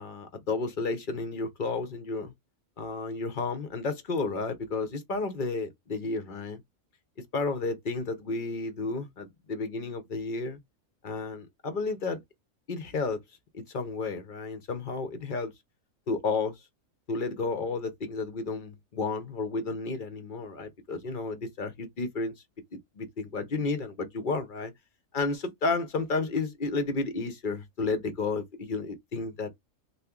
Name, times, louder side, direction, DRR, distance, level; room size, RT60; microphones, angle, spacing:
voice 1, 0.0-2.3 2.8-6.6 7.3-10.6 11.0-12.2 12.7-13.2 13.5-15.5 16.1-16.6 17.1-22.3 22.7-24.7 25.1-29.5, left 3 dB, 45° left, 0.7 m, -32 dB
2.8 x 2.5 x 3.6 m
omnidirectional pair, 1.5 m